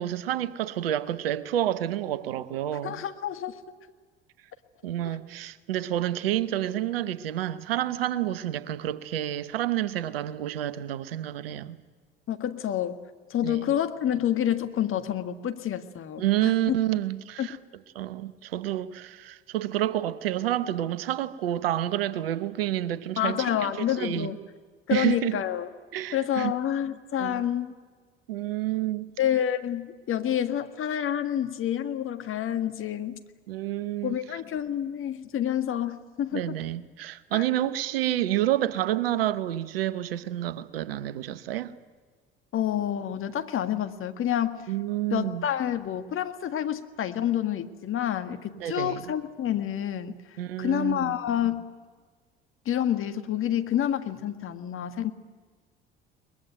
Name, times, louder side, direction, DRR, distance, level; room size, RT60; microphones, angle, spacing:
voice 1, 0.0-3.0 4.8-11.8 13.4-13.6 16.2-17.6 17.9-23.7 24.0-24.4 24.9-25.4 25.9-26.5 27.2-27.4 28.3-29.1 33.5-34.2 36.3-41.7 44.7-45.5 48.5-49.0 50.4-51.1, right 13 dB, 80° right, 1.0 m, -29 dB
voice 2, 2.8-3.6 12.3-13.0 13.3-16.8 17.4-17.5 23.2-24.4 24.9-25.7 26.1-27.7 29.2-33.2 34.0-36.6 37.3-37.4 42.5-44.7 45.1-50.2 50.6-51.7 52.7-55.1, left 10 dB, 45° left, 1.8 m, -28 dB
22.5 x 21.0 x 9.2 m
hypercardioid pair, 60°, 29 cm